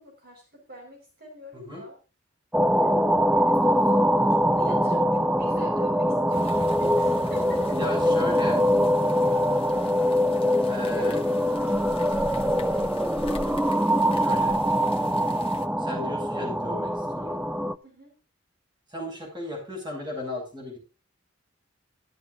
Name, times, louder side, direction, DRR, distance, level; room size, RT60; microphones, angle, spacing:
voice 1, 0.0-2.0 2.7-3.0 3.3-7.8 10.9-12.3 17.8-18.1, right 1 dB, 50° right, 0 dB, 5.0 m, -44 dB
voice 2, 1.5-1.8 7.7-8.6 10.6-11.2 14.1-14.6 15.8-17.4 18.9-20.8, left 1 dB, 25° right, 0 dB, 6.3 m, -35 dB
sound 1, 2.5-17.7, equal, 5° right, 0.4 m, -23 dB
sound 2, 6.3-15.7, left 2 dB, 30° left, 1.2 m, -42 dB
13.5 x 13.0 x 2.6 m, 0.32 s
head